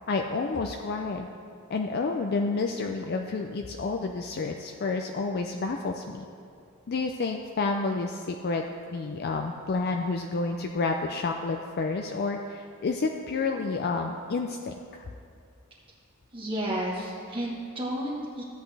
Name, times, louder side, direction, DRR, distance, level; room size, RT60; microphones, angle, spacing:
voice 1, 0.1-1.3 1.7-6.3 6.9-8.6 8.9-15.1, left 3 dB, 45° left, 3 dB, 0.4 m, -30 dB
voice 2, 16.3-18.4, right 1 dB, 25° right, -5 dB, 1.0 m, -32 dB
13.5 x 8.1 x 3.3 m, 2.4 s
head